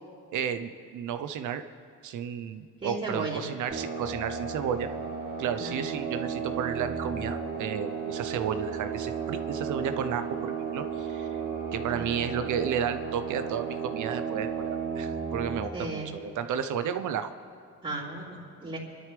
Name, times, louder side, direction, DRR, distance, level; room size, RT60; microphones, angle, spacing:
voice 1, 0.3-1.6 2.0-4.9 5.4-11.3 11.7-17.3, right 8 dB, 80° right, 10 dB, 0.9 m, -32 dB
voice 2, 2.8-3.4 5.6-5.8 11.9-12.4 15.7-16.1 17.8-18.8, right 2 dB, 25° right, -11 dB, 3.7 m, -35 dB
sound 1, 3.7-15.6, right 6 dB, 45° right, 2.9 m, -34 dB
28.0 x 12.5 x 3.4 m, 2.2 s
cardioid pair, 90°, 30 cm